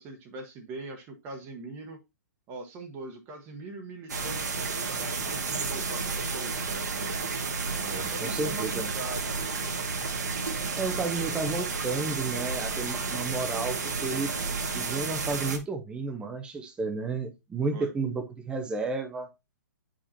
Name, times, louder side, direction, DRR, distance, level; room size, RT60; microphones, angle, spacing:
voice 1, 0.0-2.0 2.5-7.2 7.9-9.5 17.7-17.9, right 2 dB, 25° right, 1.2 m, -41 dB
sound 1, 4.1-15.6, right 4 dB, 75° right, 1.8 m, -31 dB
voice 2, 7.7-8.9 10.8-14.3 14.7-19.3, right 3 dB, 10° right, 0.8 m, -32 dB
8.4 x 5.1 x 2.8 m
hypercardioid pair, 140°, 9 cm